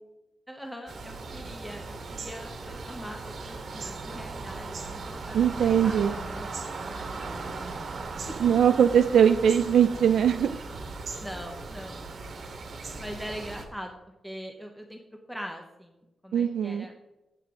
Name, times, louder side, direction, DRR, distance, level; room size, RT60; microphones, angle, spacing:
voice 1, 0.5-6.5 6.8-7.5 8.3-8.4 11.2-12.0 13.0-14.0 14.2-15.0 15.3-16.9, equal, ahead, 2 dB, 0.9 m, -42 dB
sound 1, 0.9-13.7, right 3 dB, 50° right, 1.6 m, -38 dB
voice 2, 5.3-6.2 8.4-10.5 16.3-16.9, right 8 dB, 80° right, 8 dB, 0.4 m, -21 dB
15.5 x 7.8 x 3.7 m, 0.97 s
wide cardioid pair, 180°, 0 cm